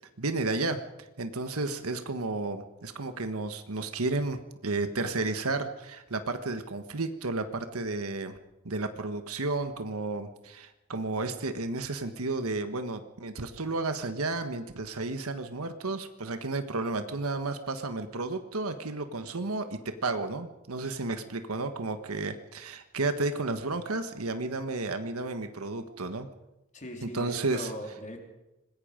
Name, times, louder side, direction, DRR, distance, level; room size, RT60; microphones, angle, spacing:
voice 1, 0.2-0.8 1.2-8.4 8.6-26.3 27.0-27.7, right 3 dB, 85° right, 8 dB, 1.4 m, -32 dB
voice 2, 26.7-28.2, equal, 35° left, 2 dB, 3.5 m, -40 dB
26.0 x 20.0 x 5.2 m, 0.97 s
head